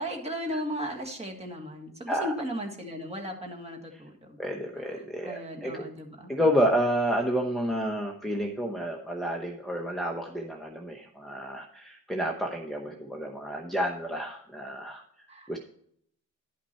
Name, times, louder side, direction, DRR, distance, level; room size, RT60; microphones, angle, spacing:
voice 1, 0.0-4.4 4.8-6.3 15.3-15.6, equal, 20° right, 2 dB, 1.6 m, -36 dB
voice 2, 4.4-5.8 6.3-15.0 15.5-15.6, equal, ahead, -1 dB, 0.9 m, -30 dB
11.5 x 5.9 x 4.3 m, 0.65 s
wide cardioid pair, 165°, 32 cm